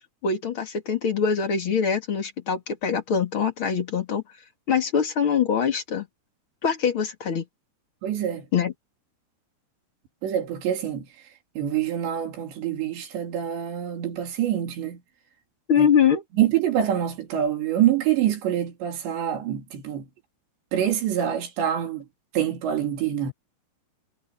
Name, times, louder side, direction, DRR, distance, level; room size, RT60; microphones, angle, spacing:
voice 1, 0.2-4.2 4.7-6.1 6.6-7.4 8.5-8.7 15.7-16.2, left 7 dB, 35° left, 2.3 m, -23 dB
voice 2, 8.0-8.5 10.2-11.1 11.6-15.0 15.8-15.9 16.4-20.1 20.7-22.1 22.3-23.3, right 10 dB, 80° right, 5.1 m, -25 dB
omnidirectional pair, 5.0 m